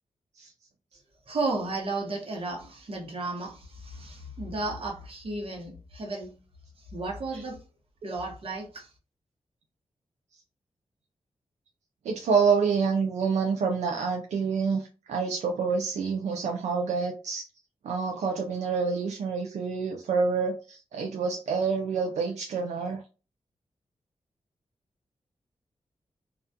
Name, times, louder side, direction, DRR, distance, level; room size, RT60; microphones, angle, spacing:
voice 1, 1.3-6.4 6.8-7.6 8.0-8.9, right 2 dB, 55° right, 0.9 m, -33 dB
voice 2, 12.0-17.5 17.8-23.0, right 5 dB, 90° right, 0.4 m, -27 dB
2.4 x 2.1 x 2.6 m
cardioid pair, 70°, 11 cm